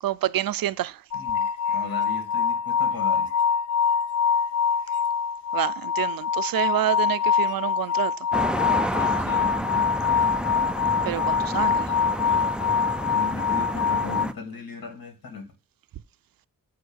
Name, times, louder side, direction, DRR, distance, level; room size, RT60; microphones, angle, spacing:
voice 1, 0.0-1.0 5.5-8.3 11.0-11.9, right 12 dB, 80° right, 0.5 m, -28 dB
voice 2, 1.1-3.3 9.0-9.8 13.1-15.5, left 4 dB, 85° left, 2.3 m, -37 dB
sound 1, 1.1-14.3, left 6 dB, 60° left, 0.6 m, -24 dB
sound 2, 8.3-14.3, right 1 dB, 5° right, 0.4 m, -30 dB
7.2 x 4.8 x 6.2 m
wide cardioid pair, 165°, 34 cm